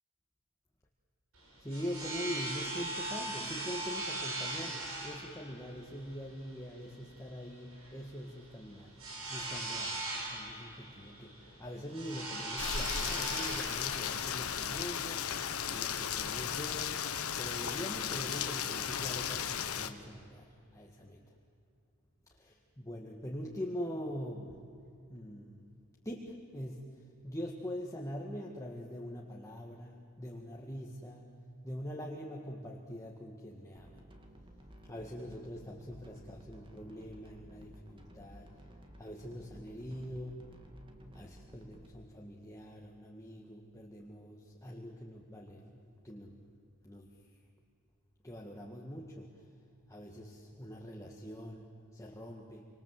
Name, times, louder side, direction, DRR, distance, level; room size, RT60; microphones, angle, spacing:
sound 1, 1.3-15.9, right 2 dB, 75° right, 7.1 m, -40 dB
voice 1, 1.6-8.9 9.3-17.1 17.4-21.2 22.3-24.6 25.1-25.6 26.0-31.3 31.6-34.0 34.9-38.5 39.0-40.4 41.1-46.4 46.8-47.1 48.2-49.5 49.9-52.7, equal, 15° left, -1 dB, 2.0 m, -43 dB
Rain, 12.6-19.9, left 8 dB, 85° left, 1.4 m, -35 dB
sound 2, 33.8-41.9, equal, 25° right, 2.5 m, -55 dB
28.0 x 26.0 x 7.8 m, 2.5 s
head